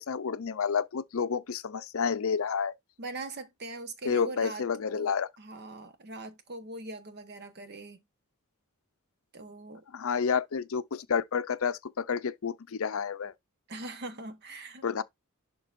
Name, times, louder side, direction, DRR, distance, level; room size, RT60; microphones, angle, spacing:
voice 1, 0.0-2.7 4.0-5.3 9.9-13.3 14.8-15.0, left 6 dB, 65° left, 0.5 m, -30 dB
voice 2, 3.0-4.7 4.9-8.0 9.3-9.8 13.7-15.0, right 2 dB, 50° right, 1.1 m, -41 dB
11.0 x 3.8 x 2.5 m
head